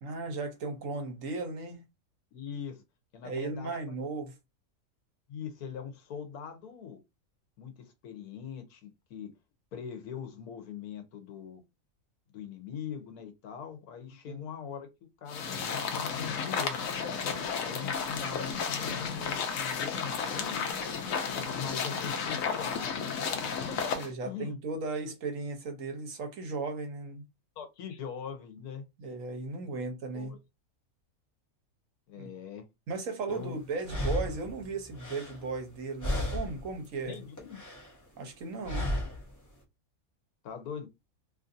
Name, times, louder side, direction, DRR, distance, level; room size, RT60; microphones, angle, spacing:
voice 1, 0.0-1.8 3.2-4.3 14.3-14.4 23.9-27.2 29.0-30.3 32.2-32.3 32.9-37.2 38.2-38.9, right 3 dB, 65° right, 1.1 m, -36 dB
voice 2, 2.3-2.8 3.1-4.1 5.3-7.0 7.6-9.3 9.7-11.6 12.3-14.9 15.2-16.8 17.6-20.9 21.3-23.4 23.8-23.9 24.2-24.6 27.6-28.8 29.7-29.9 30.1-30.4 32.1-32.7 33.3-33.6 37.0-37.6 40.4-40.9, left 7 dB, 85° left, 1.3 m, -42 dB
sound 1, 15.3-24.1, left 6 dB, 70° left, 1.0 m, -33 dB
sound 2, 33.3-33.4 33.8-35.8 36.0-36.7 37.0-38.0 38.6-39.3, left 1 dB, 15° left, 0.8 m, -34 dB
3.0 x 2.5 x 2.5 m
omnidirectional pair, 1.6 m